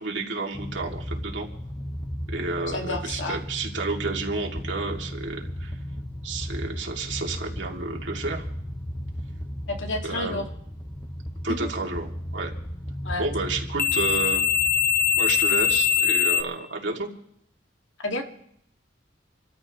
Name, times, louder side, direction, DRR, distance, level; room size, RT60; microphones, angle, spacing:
voice 1, 0.0-1.5 2.3-5.8 6.2-8.5 10.0-10.4 11.4-12.5 13.2-14.5 15.1-17.1, right 3 dB, 75° right, 0 dB, 2.6 m, -31 dB
sound 1, 0.5-16.4, left 6 dB, 10° left, 0.7 m, -28 dB
voice 2, 2.7-3.4 9.7-10.4 13.0-13.2 18.0-18.2, left 2 dB, 80° left, 2 dB, 2.2 m, -30 dB
29.0 x 13.5 x 3.1 m, 0.70 s
head